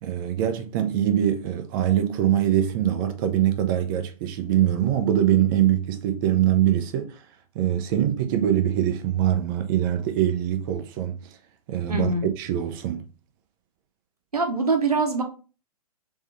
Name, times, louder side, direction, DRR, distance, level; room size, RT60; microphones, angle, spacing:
voice 1, 0.0-7.2 7.5-11.3 11.7-12.1 12.4-13.0, right 11 dB, 35° right, 0.6 m, -23 dB
voice 2, 11.9-12.3 14.3-15.2, right 3 dB, 85° right, 1.1 m, -23 dB
3.7 x 3.1 x 3.4 m
figure-of-eight pair, 115°, 19 cm